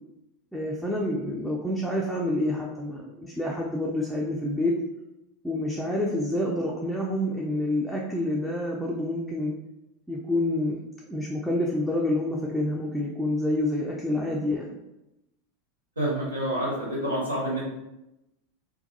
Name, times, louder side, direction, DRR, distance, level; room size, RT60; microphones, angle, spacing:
voice 1, 0.5-4.7 5.4-9.5 10.1-10.8 11.1-14.6, left 1 dB, ahead, -3 dB, 0.4 m, -28 dB
voice 2, 16.0-17.6, right 1 dB, 85° right, -4 dB, 0.7 m, -28 dB
2.3 x 2.2 x 2.6 m, 0.91 s
figure-of-eight pair, 85°, 0 cm